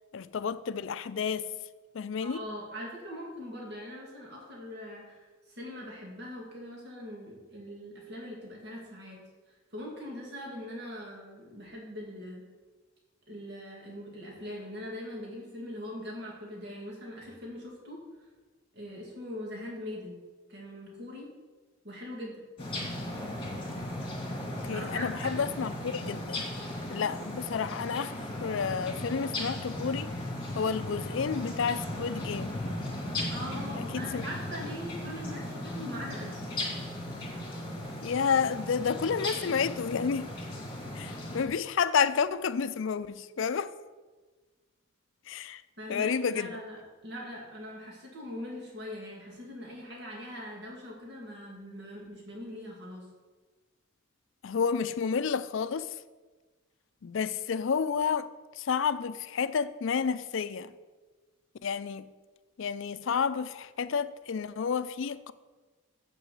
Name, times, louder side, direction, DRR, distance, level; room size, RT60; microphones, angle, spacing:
voice 1, 0.1-1.5 1.9-2.4 24.6-26.5 26.9-30.1 30.6-32.5 33.8-34.3 38.0-40.3 40.9-43.7 45.3-45.6 45.9-46.6 54.4-56.0 57.0-58.3 58.5-60.7 61.6-62.1 62.6-65.3, left 6 dB, 60° left, 0.4 m, -30 dB
voice 2, 2.2-12.4 13.3-18.0 18.7-20.2 20.5-21.3 21.8-22.4 24.7-25.4 33.3-36.4 45.8-53.1, equal, 50° right, 2.2 m, -41 dB
sound 1, 22.6-41.4, left 1 dB, 25° left, 2.4 m, -37 dB
7.4 x 6.0 x 7.6 m
head